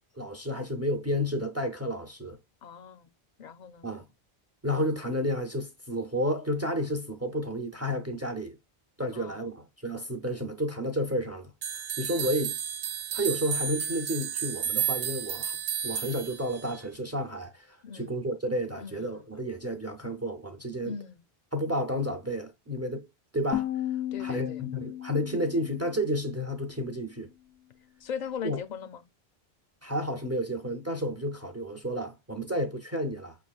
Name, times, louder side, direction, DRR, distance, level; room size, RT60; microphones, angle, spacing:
voice 1, 0.2-2.4 3.8-4.0 4.6-8.6 9.0-11.5 12.0-12.6 13.1-15.6 15.8-21.0 21.5-23.1 23.3-23.7 24.2-27.3 28.4-28.6 29.8-33.4, equal, 25° right, 0.4 m, -31 dB
voice 2, 2.6-3.1 3.4-3.9 9.1-9.5 17.8-18.1 18.8-19.3 20.8-21.2 24.1-24.6 28.0-29.0, left 7 dB, 55° left, 0.5 m, -39 dB
sound 1, 11.6-16.8, right 8 dB, 70° right, 0.8 m, -32 dB
sound 2, 23.5-26.5, left 12 dB, 80° left, 0.8 m, -35 dB
5.6 x 3.3 x 2.3 m
omnidirectional pair, 1.1 m